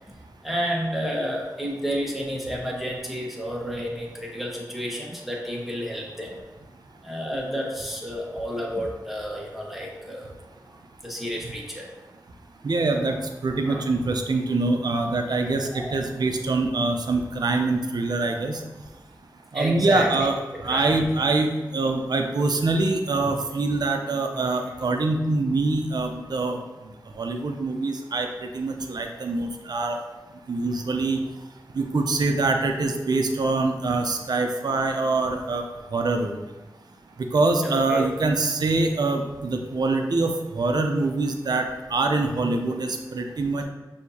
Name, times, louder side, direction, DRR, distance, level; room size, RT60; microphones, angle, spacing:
voice 1, 0.1-6.3 7.0-10.3 10.7-11.9 13.6-13.8 15.6-15.9 19.5-20.4 20.6-21.0 24.3-24.7 37.6-38.2, equal, 5° right, -3 dB, 1.2 m, -31 dB
voice 2, 12.6-13.2 13.4-18.6 19.5-20.3 20.6-26.6 27.2-28.3 28.5-30.0 30.5-31.2 31.8-35.6 35.9-36.4 37.3-43.6, right 3 dB, 65° right, 4 dB, 0.5 m, -24 dB
6.2 x 2.8 x 2.8 m, 1.1 s
cardioid pair, 40°, 7 cm